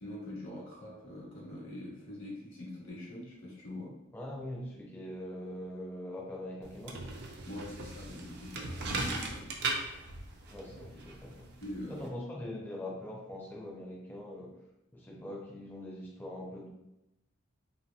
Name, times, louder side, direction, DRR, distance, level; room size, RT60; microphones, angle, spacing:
voice 1, 0.0-3.9 7.5-9.5 11.6-12.1, left 1 dB, 65° left, -4 dB, 1.0 m, -43 dB
voice 2, 4.1-7.0 10.4-11.5 11.9-14.5 14.9-16.7, left 1 dB, 10° left, -3 dB, 0.4 m, -42 dB
sound 1, 6.6-12.1, right 3 dB, 50° right, 0.4 m, -39 dB
2.8 x 2.6 x 2.2 m, 0.90 s
head